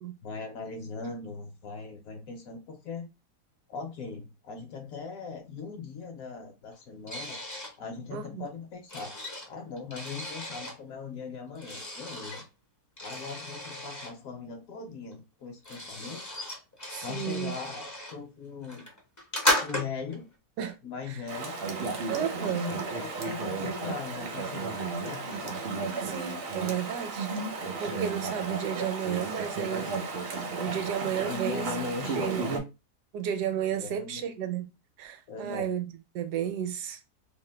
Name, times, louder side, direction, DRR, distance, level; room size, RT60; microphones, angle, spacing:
voice 1, 0.2-3.1 3.7-7.4 7.8-9.2 9.5-12.4 13.0-16.3 17.0-18.9 19.6-20.3 20.8-21.6 22.2-25.6 31.3-32.6 33.7-34.3 35.3-35.7, left 4 dB, 65° left, 1.0 m, -39 dB
sound 1, 7.1-7.7 8.5-10.8 11.6-12.4 13.0-14.1 15.1-15.2 15.4-18.2 18.6-20.2, left 1 dB, 25° left, 0.4 m, -34 dB
voice 2, 8.1-8.5 16.9-17.5 20.6-20.8 21.1-21.2 22.1-22.7 26.0-27.4 27.8-29.9 30.6-31.7 32.2-32.5 33.1-34.7 35.0-37.0, right 9 dB, 80° right, 1.1 m, -32 dB
Chatter / Stream, 21.3-32.6, right 4 dB, 60° right, 0.6 m, -34 dB
2.8 x 2.1 x 3.2 m
omnidirectional pair, 1.7 m